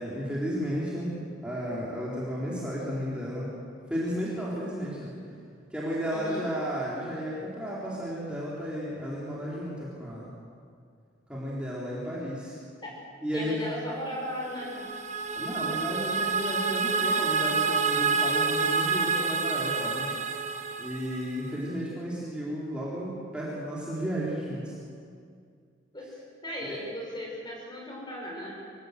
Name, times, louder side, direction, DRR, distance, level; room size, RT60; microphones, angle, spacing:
voice 1, 0.0-3.5 3.9-5.1 5.7-10.3 11.3-12.6 13.2-13.6 15.4-20.1 20.8-24.7 26.6-26.8, equal, 5° right, -8 dB, 3.8 m, -33 dB
voice 2, 6.1-6.4 12.8-12.9 13.3-14.9 25.9-26.2 26.4-28.6, equal, 20° left, -3 dB, 6.1 m, -36 dB
sound 1, 14.3-21.5, right 5 dB, 35° right, 1.2 m, -28 dB
24.5 x 16.5 x 8.1 m, 2.2 s
head